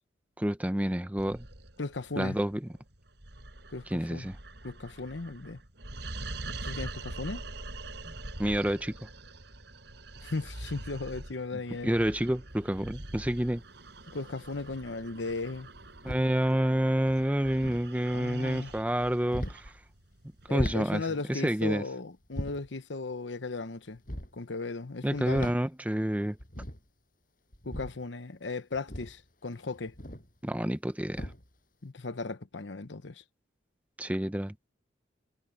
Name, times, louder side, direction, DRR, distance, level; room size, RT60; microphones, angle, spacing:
voice 1, 0.4-1.5 2.2-2.6 3.9-4.4 8.0-8.1 8.4-8.9 11.8-13.6 16.0-19.7 20.5-21.8 25.0-26.4 30.4-31.3 34.0-34.5, equal, 10° right, 0.8 m, -28 dB
sound 1, 1.2-20.8, right 2 dB, 65° right, 5.2 m, -44 dB
voice 2, 1.8-2.4 3.7-4.3 4.6-5.6 6.6-7.4 10.2-11.9 14.1-15.7 18.1-18.7 20.5-24.0 24.3-25.5 27.6-29.9 31.8-33.2, left 3 dB, 70° left, 1.0 m, -36 dB
sound 2, 12.5-12.6 14.0-14.5 15.7-16.4 17.4-17.9 19.2-19.7 20.4-20.9 22.2-22.7 23.9-24.4 25.1-25.7 26.0-26.1 26.3-26.9 27.5-28.0 28.7-30.4 31.0-31.6, equal, 45° left, 7.8 m, -39 dB
head